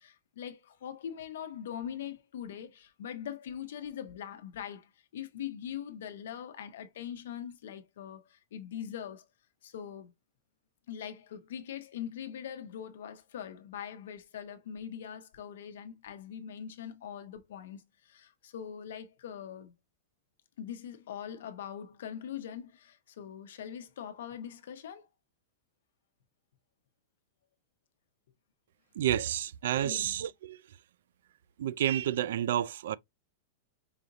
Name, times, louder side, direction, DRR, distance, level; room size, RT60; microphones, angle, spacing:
voice 1, 0.0-9.3 9.6-10.1 10.9-19.7 20.6-25.1 29.8-30.2, left 9 dB, 75° left, 0.8 m, -42 dB
voice 2, 29.0-30.8 31.6-33.0, right 11 dB, 70° right, 0.3 m, -30 dB
4.9 x 2.6 x 2.9 m
supercardioid pair, 175°, 0 cm